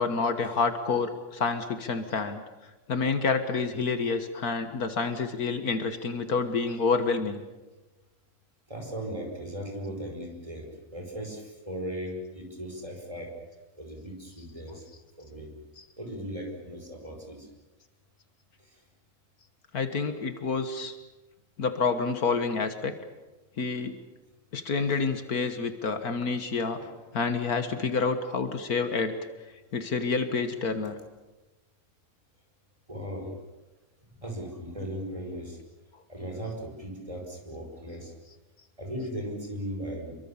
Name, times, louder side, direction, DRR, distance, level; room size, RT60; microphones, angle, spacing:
voice 1, 0.0-2.4 2.9-7.4 15.8-15.9 19.7-21.0 21.6-22.9 23.6-24.0 24.5-26.8 27.1-29.2 29.7-31.0, left 4 dB, 70° left, 9 dB, 2.0 m, -28 dB
voice 2, 8.7-13.3 13.8-14.8 15.2-15.5 16.0-17.5 18.6-18.7 24.9-25.0 26.8-26.9 32.9-33.3 34.1-35.6 36.1-38.1 38.8-40.2, equal, 20° right, 2 dB, 5.1 m, -37 dB
27.0 x 23.5 x 7.2 m, 1.1 s
omnidirectional pair, 1.6 m